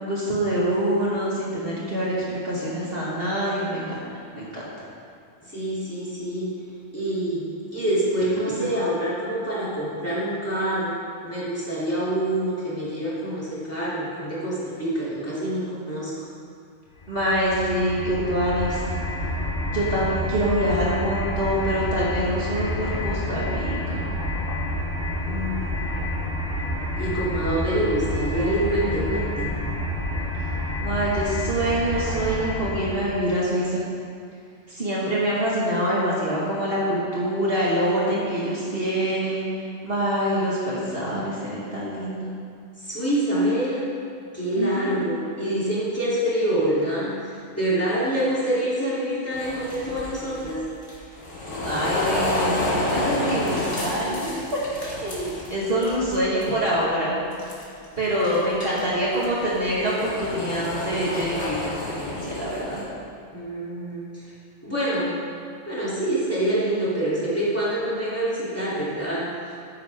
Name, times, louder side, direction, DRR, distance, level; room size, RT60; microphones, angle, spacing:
voice 1, 0.0-4.0 4.3-4.7 17.1-18.8 19.7-24.0 30.8-33.8 34.7-39.4 39.8-42.3 44.6-45.0 51.6-57.2 58.0-62.9, equal, 45° right, -7 dB, 2.0 m, -25 dB
voice 2, 5.4-6.5 6.9-10.9 11.2-16.1 25.2-26.1 27.0-29.5 42.8-43.8 44.3-50.6 63.3-64.3 64.6-65.1 65.7-69.6, right 1 dB, 10° left, -10 dB, 3.1 m, -26 dB
sound 1, 17.0-33.2, left 1 dB, 45° left, 1.3 m, -29 dB
sound 2, 49.3-56.1 56.4-56.8 57.3-57.8 58.2-62.8, left 2 dB, 65° left, 2.2 m, -30 dB
13.5 x 9.1 x 3.6 m, 2.3 s
omnidirectional pair, 1.3 m